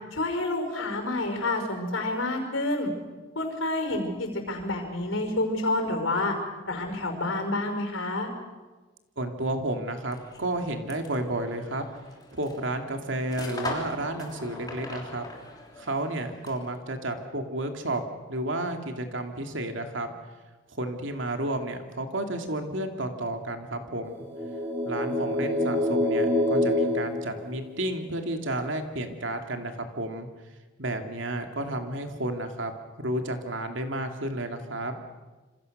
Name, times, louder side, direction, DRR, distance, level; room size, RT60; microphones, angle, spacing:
voice 1, 0.1-2.9 3.4-6.3 6.6-8.3, left 2 dB, 90° left, 5 dB, 5.6 m, -28 dB
voice 2, 9.2-11.8 12.3-15.2 15.8-18.0 18.3-20.1 20.7-24.1 24.8-30.3 30.8-32.7 33.0-35.0, right 1 dB, 75° right, 5 dB, 2.6 m, -31 dB
sound 1, 10.0-16.8, left 2 dB, 20° left, 3.2 m, -41 dB
sound 2, 24.2-28.0, left 1 dB, 10° right, 4.3 m, -26 dB
27.0 x 26.0 x 6.7 m, 1.3 s
head